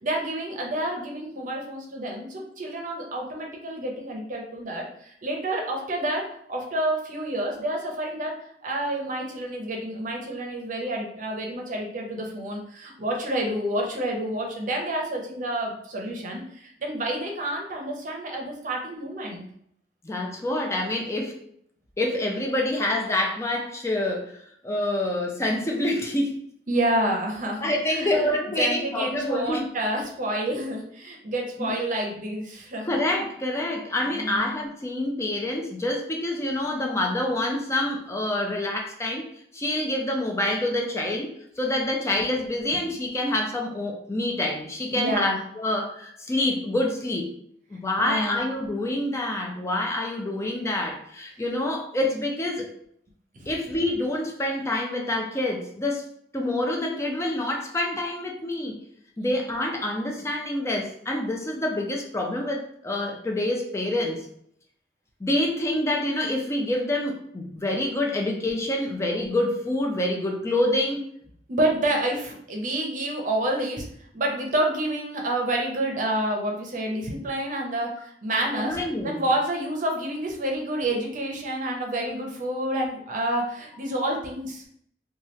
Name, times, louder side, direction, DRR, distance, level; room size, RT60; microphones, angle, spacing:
voice 1, 0.0-8.3 8.6-19.4 26.7-33.0 34.1-34.5 44.9-45.4 48.0-48.4 53.3-53.5 59.2-59.3 71.5-73.9 74.1-84.6, right 1 dB, 45° right, 0 dB, 0.7 m, -29 dB
voice 2, 20.0-21.4 22.0-24.3 24.6-26.4 27.6-29.7 31.6-31.7 32.9-41.3 41.6-47.4 47.7-52.7 53.5-56.1 56.3-58.8 59.2-64.3 65.2-71.0 78.6-79.2, left 1 dB, 15° left, 1 dB, 0.4 m, -27 dB
3.0 x 2.3 x 3.0 m, 0.69 s
head